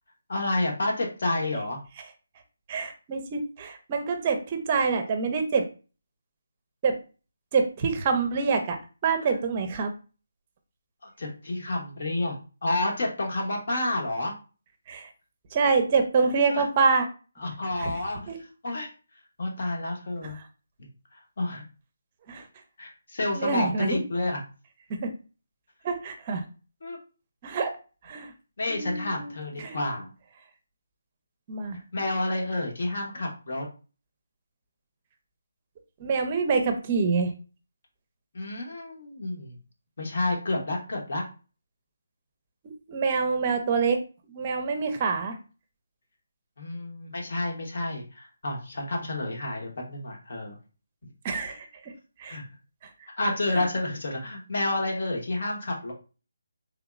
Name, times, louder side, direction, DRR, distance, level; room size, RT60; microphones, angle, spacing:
voice 1, 0.3-1.8 9.2-9.3 11.2-12.3 12.6-14.3 16.5-16.6 17.4-18.9 19.4-20.3 21.4-21.6 22.8-24.4 26.8-27.0 28.6-30.1 31.9-33.6 38.3-39.6 40.0-41.2 46.6-50.6 52.3-52.4 53.2-55.9, left 2 dB, 55° left, 0 dB, 1.1 m, -29 dB
voice 2, 2.7-5.7 6.8-6.9 7.5-8.8 9.0-9.9 14.9-15.1 15.5-17.1 17.8-17.9 18.3-18.4 20.2-20.3 22.3-22.4 23.3-24.0 25.0-25.1 25.8-26.4 27.4-27.7 28.0-28.3 28.7-29.3 29.6-29.8 31.5-31.8 36.0-37.3 42.9-44.0 44.3-45.4 51.2-51.7 52.2-52.4, right 5 dB, 30° right, 6 dB, 0.6 m, -26 dB
3.4 x 2.8 x 2.4 m, 0.34 s
figure-of-eight pair, 160°, 0 cm